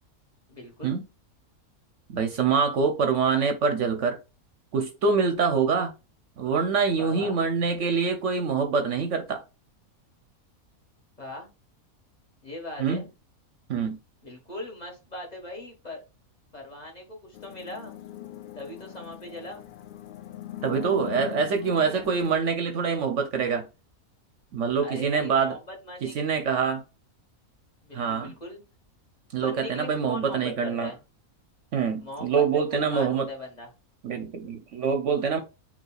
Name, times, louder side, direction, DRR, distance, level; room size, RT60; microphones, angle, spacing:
voice 1, 0.5-0.9 6.9-7.4 11.2-11.5 12.4-13.0 14.2-16.0 16.5-17.9 18.6-19.7 24.8-26.2 27.8-28.6 29.4-31.0 32.0-33.7, left 1 dB, 30° left, 1.5 m, -40 dB
voice 2, 2.1-4.2 4.7-5.9 6.4-9.4 12.8-13.0 13.7-14.0 20.6-23.7 24.5-25.6 26.0-26.8 27.9-28.3 29.3-30.9 31.7-33.3 34.0-35.4, right 5 dB, 65° right, 1.0 m, -25 dB
sound 1, 17.3-22.3, left 12 dB, 85° left, 0.4 m, -41 dB
8.0 x 2.9 x 2.3 m
omnidirectional pair, 1.5 m